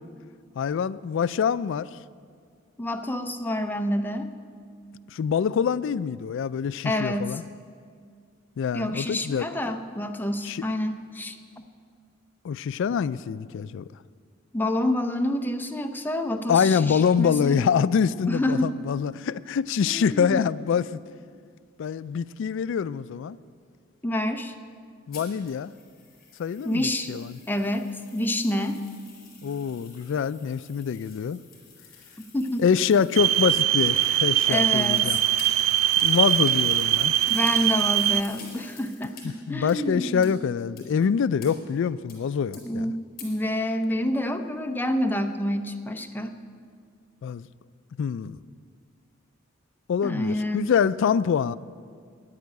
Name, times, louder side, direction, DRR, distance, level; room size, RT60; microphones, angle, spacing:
voice 1, 0.6-1.9 5.1-7.4 8.6-9.5 10.4-10.6 12.4-13.9 16.5-21.0 21.8-23.4 25.1-25.7 26.4-27.3 29.4-31.4 32.6-35.2 36.0-37.1 39.5-42.9 47.2-47.5 48.0-48.4 49.9-51.6, left 7 dB, 65° left, 17 dB, 0.3 m, -25 dB
voice 2, 2.8-4.3 6.8-7.4 8.7-11.4 14.5-17.6 18.3-18.7 19.8-20.5 24.0-24.5 26.6-27.2 27.5-28.8 32.3-32.7 34.5-35.2 37.3-40.3 42.6-46.4 50.0-50.7, left 1 dB, 10° left, 6 dB, 0.7 m, -28 dB
sound 1, 25.1-39.2 39.7-39.8 40.2-40.3 40.8-40.9 41.4-41.5 42.1-42.2 42.5-42.6 43.2-43.3, left 5 dB, 45° left, 4.3 m, -47 dB
sound 2, 33.2-38.2, right 12 dB, 80° right, 0.3 m, -22 dB
10.0 x 9.9 x 9.4 m, 2.2 s
head